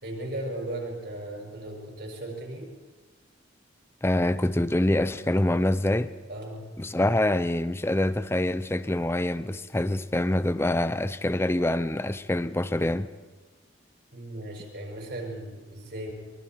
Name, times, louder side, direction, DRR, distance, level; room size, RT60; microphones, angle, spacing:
voice 1, 0.0-2.7 6.3-6.6 14.1-16.1, right 1 dB, 55° right, 6.4 m, -36 dB
voice 2, 4.0-6.1 6.8-13.1, left 1 dB, 10° left, 0.5 m, -25 dB
24.0 x 23.5 x 4.6 m
head